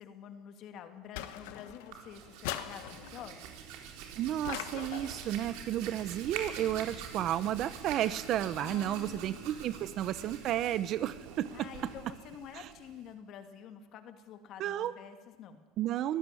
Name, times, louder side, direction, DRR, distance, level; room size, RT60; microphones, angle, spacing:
voice 1, 0.0-3.4 8.6-9.7 11.5-15.6, left 8 dB, 50° left, 7 dB, 2.6 m, -48 dB
sound 1, 1.2-1.9 2.4-3.3 4.4-5.3, left 13 dB, 75° left, 1.5 m, -40 dB
Hands, 1.7-13.1, right 7 dB, 70° right, 4.0 m, -45 dB
voice 2, 4.2-11.7 12.5-12.7 14.6-14.9 15.8-16.2, right 12 dB, 50° right, 15 dB, 0.9 m, -32 dB
23.0 x 14.5 x 10.0 m, 1.3 s
supercardioid pair, 115°, 0 cm